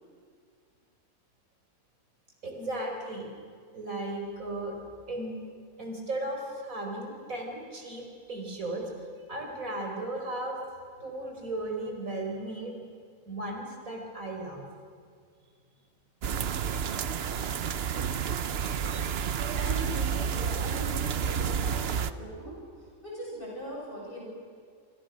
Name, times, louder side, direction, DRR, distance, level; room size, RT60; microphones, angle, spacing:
voice 1, 2.4-3.3 3.7-4.8 5.1-5.4 5.8-8.8 9.3-10.6 11.0-12.8 13.3-14.6, right 2 dB, 75° right, 1 dB, 5.1 m, -35 dB
sound 1, 16.2-22.1, right 7 dB, 55° right, 0.9 m, -30 dB
voice 2, 19.2-24.3, right 1 dB, 40° left, -4 dB, 7.7 m, -40 dB
28.0 x 25.5 x 6.4 m, 2.1 s
omnidirectional pair, 1.4 m